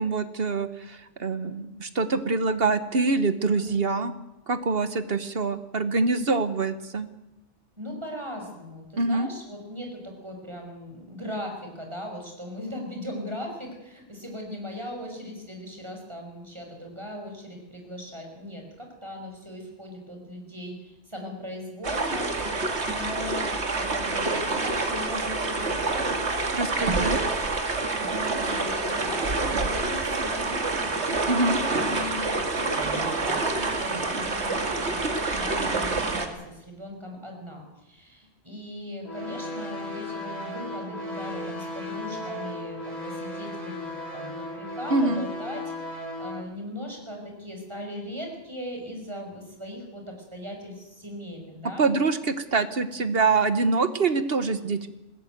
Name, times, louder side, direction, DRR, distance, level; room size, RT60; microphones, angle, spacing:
voice 1, 0.0-4.1 4.5-7.1 9.0-9.3 26.5-27.2 31.3-31.6 44.9-45.3 51.8-54.9, right 3 dB, 60° right, 11 dB, 1.4 m, -25 dB
voice 2, 7.8-26.2 28.0-31.0 31.7-51.9, left 1 dB, 25° right, 2 dB, 5.7 m, -39 dB
sound 1, 21.8-36.3, right 3 dB, 75° right, 2.4 m, -27 dB
sound 2, 39.0-46.4, left 1 dB, 35° left, 4.3 m, -35 dB
20.5 x 16.5 x 9.3 m, 0.93 s
omnidirectional pair, 1.2 m